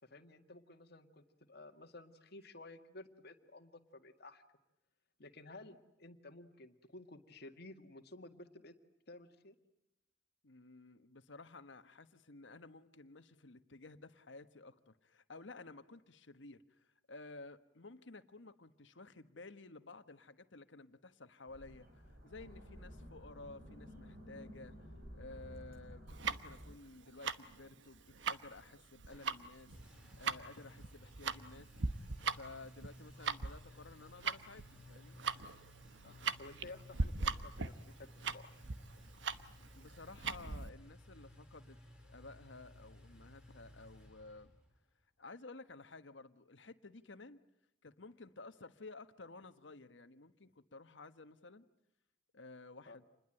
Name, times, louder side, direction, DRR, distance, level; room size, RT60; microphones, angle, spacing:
voice 1, 0.0-4.4 5.2-8.7 9.1-9.5 36.0-38.4 52.9-53.0, left 2 dB, 60° left, 5 dB, 2.1 m, -54 dB
voice 2, 10.4-29.7 30.2-31.7 32.2-35.2 39.7-44.5 45.2-47.4 47.8-51.7 52.3-53.0, left 3 dB, 75° left, 10 dB, 1.4 m, -54 dB
sound 1, 21.5-26.7, equal, 55° right, 5.8 m, -53 dB
Tick-tock, 26.1-40.7, right 4 dB, 75° right, 1.1 m, -40 dB
Engine, 29.1-44.8, left 1 dB, 5° right, 5.3 m, -58 dB
27.5 x 21.0 x 9.0 m, 0.84 s
head